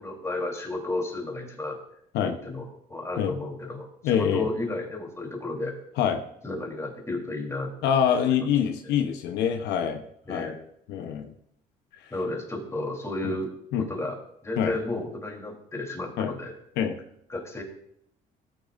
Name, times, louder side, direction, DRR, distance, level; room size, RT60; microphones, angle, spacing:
voice 1, 0.0-1.8 2.2-5.7 6.4-7.7 8.3-8.4 10.3-10.5 12.1-13.5 13.8-14.2 14.4-16.5 17.3-17.6, left 2 dB, 15° left, 0 dB, 3.6 m, -32 dB
voice 2, 4.0-4.5 6.0-6.2 7.8-10.0 10.3-10.5 10.9-11.3 13.2-13.3 13.7-13.9 14.6-14.7 16.2-16.3 16.8-16.9, left 8 dB, 90° left, 5 dB, 1.0 m, -25 dB
19.0 x 9.0 x 2.6 m, 0.73 s
cardioid pair, 110°, 17 cm